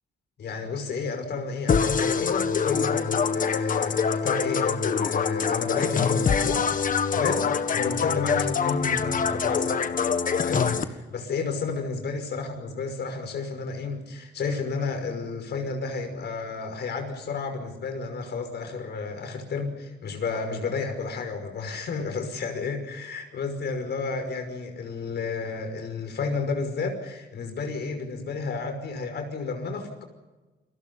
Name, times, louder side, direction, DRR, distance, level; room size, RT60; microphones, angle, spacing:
voice 1, 0.4-9.9 10.4-30.0, left 4 dB, 70° left, 6 dB, 5.7 m, -31 dB
sound 1, 1.7-10.8, left 6 dB, 50° left, 1.6 m, -24 dB
29.5 x 23.0 x 5.6 m, 1.2 s
cardioid pair, 125°, 18 cm